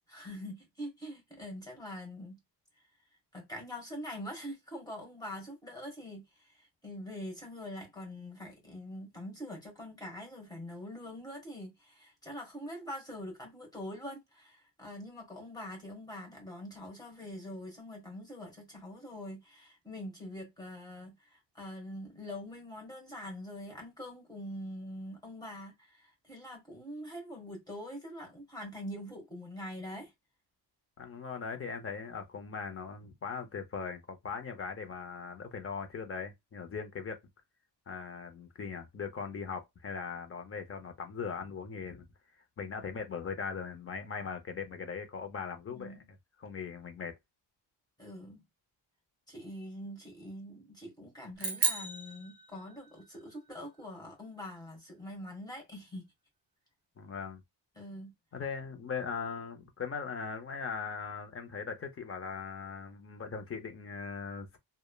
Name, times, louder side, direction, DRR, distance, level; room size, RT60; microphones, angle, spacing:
voice 1, 0.1-2.4 3.3-30.1 45.7-46.1 48.0-48.4 49.3-56.1 57.7-58.1, left 1 dB, 10° left, 1.3 m, -44 dB
voice 2, 31.0-37.2 37.9-42.1 42.6-46.0 46.4-47.2 57.0-57.4 58.3-64.6, left 5 dB, 30° left, 0.5 m, -39 dB
sound 1, 51.4-53.0, right 5 dB, 30° right, 0.8 m, -34 dB
3.2 x 2.0 x 2.2 m
cardioid pair, 135°, 43 cm